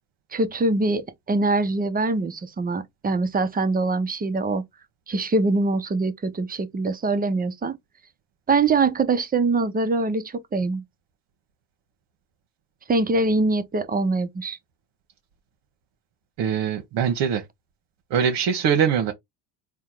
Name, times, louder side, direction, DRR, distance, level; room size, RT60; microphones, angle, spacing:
voice 1, 0.3-4.6 5.1-7.8 8.5-10.8 12.9-14.6, right 3 dB, 20° right, 0.7 m, -23 dB
voice 2, 16.4-17.4 18.1-19.1, right 7 dB, 65° right, 1.1 m, -22 dB
3.6 x 2.2 x 4.4 m
supercardioid pair, 90°, 45 cm